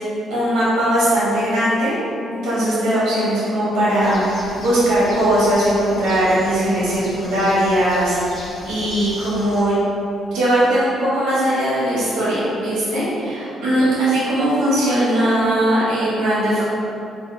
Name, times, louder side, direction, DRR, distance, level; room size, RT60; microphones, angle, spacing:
voice 1, 0.3-1.9 2.3-9.8 10.3-16.7, right 1 dB, 85° right, -10 dB, 1.3 m, -19 dB
Bird, 4.0-9.6, left 1 dB, 50° left, 0.9 m, -38 dB
3.3 x 2.4 x 3.9 m, 2.8 s
cardioid pair, 90°, 0 cm